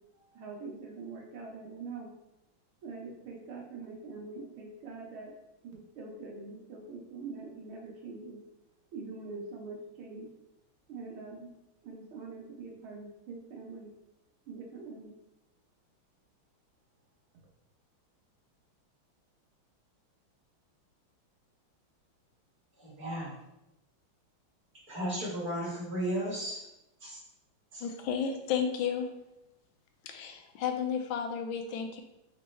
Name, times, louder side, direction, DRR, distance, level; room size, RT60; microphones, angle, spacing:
voice 1, 0.1-2.1 2.8-5.3 5.6-8.4 8.9-10.3 10.9-11.5 11.8-13.9 14.5-15.1, right 4 dB, 80° right, -1 dB, 1.8 m, -44 dB
voice 2, 22.8-23.4 24.9-26.7 27.0-27.2 27.7-27.8, right 1 dB, 45° right, -7 dB, 1.9 m, -35 dB
voice 3, 27.8-29.1 30.0-32.0, left 7 dB, 75° left, 5 dB, 1.3 m, -32 dB
5.3 x 3.1 x 3.2 m, 0.89 s
omnidirectional pair, 2.3 m